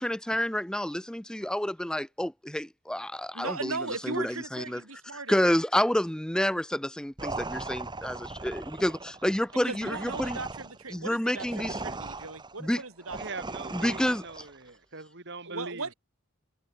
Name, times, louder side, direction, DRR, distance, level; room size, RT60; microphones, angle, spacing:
voice 1, 0.0-3.8 4.0-4.8 5.3-10.4 10.9-11.8 12.6-12.8 13.7-14.2, left 1 dB, 5° left, 0.4 m, -29 dB
voice 2, 3.3-5.4 9.7-13.2 15.5-15.9, right 3 dB, 80° right, 5.5 m, -37 dB
sound 1, 7.2-14.6, right 3 dB, 20° right, 2.0 m, -39 dB
voice 3, 13.1-15.9, right 3 dB, 55° right, 3.6 m, -41 dB
head